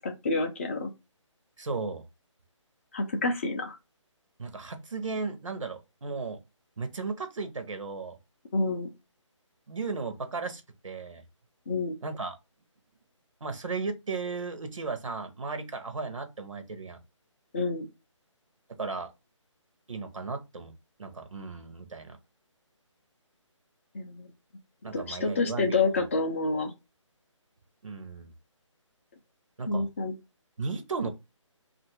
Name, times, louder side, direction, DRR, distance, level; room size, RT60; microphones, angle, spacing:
voice 1, 0.0-0.9 2.9-3.8 8.5-8.9 11.7-11.9 17.5-17.9 23.9-24.3 24.9-26.7 29.7-30.1, left 3 dB, 25° left, 0.4 m, -28 dB
voice 2, 1.6-2.0 4.4-6.4 6.8-8.2 9.7-11.2 12.0-12.4 13.4-17.0 18.8-19.1 19.9-20.7 21.0-22.2 24.8-26.0 27.8-28.3 29.6-29.9 30.6-31.1, right 4 dB, 75° right, 0.8 m, -35 dB
2.6 x 2.5 x 2.9 m
figure-of-eight pair, 150°, 16 cm